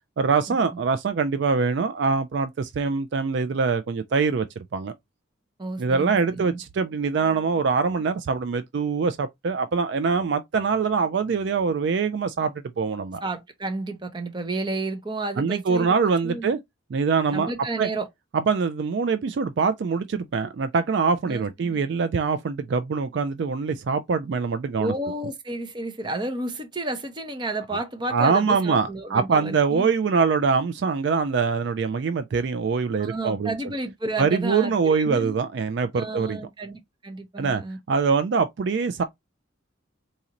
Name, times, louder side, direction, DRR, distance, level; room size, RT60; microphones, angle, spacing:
voice 1, 0.2-4.9 5.8-13.2 15.4-16.6 16.9-17.5 17.8-17.9 18.3-24.9 27.7-27.8 28.1-33.5 34.2-36.4 37.4-37.6 37.9-39.0, right 5 dB, 55° right, 0.3 m, -24 dB
voice 2, 5.6-6.6 13.2-15.9 16.2-16.5 17.3-18.1 21.3-21.8 24.8-29.9 33.0-35.4 36.0-37.8, right 2 dB, 20° right, 0.7 m, -31 dB
4.1 x 2.5 x 2.8 m
head